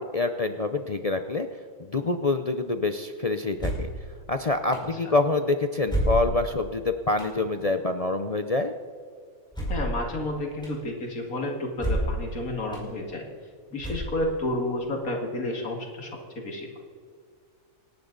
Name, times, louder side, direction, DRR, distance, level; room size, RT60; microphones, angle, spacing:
voice 1, 0.0-1.5 1.8-3.9 4.3-8.7, left 3 dB, 45° left, 7 dB, 0.5 m, -26 dB
sound 1, 3.6-4.0 4.7-4.8 5.9-6.6 7.2-7.3 9.5-10.0 10.6-10.7 11.8-12.2 12.7-12.8 13.8-14.4, right 1 dB, 5° left, 5.2 m, -28 dB
voice 2, 9.7-13.3 13.7-16.7, left 1 dB, 70° left, 1 dB, 2.6 m, -31 dB
28.0 x 10.5 x 4.0 m, 2.1 s
omnidirectional pair, 1.5 m